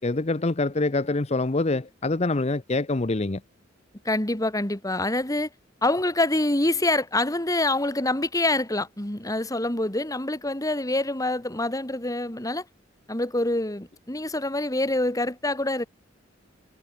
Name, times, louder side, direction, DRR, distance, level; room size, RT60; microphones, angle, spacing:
voice 1, 0.0-3.4, left 2 dB, 35° left, 0.8 m, -25 dB
voice 2, 4.0-5.5 5.8-12.6 13.1-15.9, left 2 dB, 15° left, 2.1 m, -26 dB
head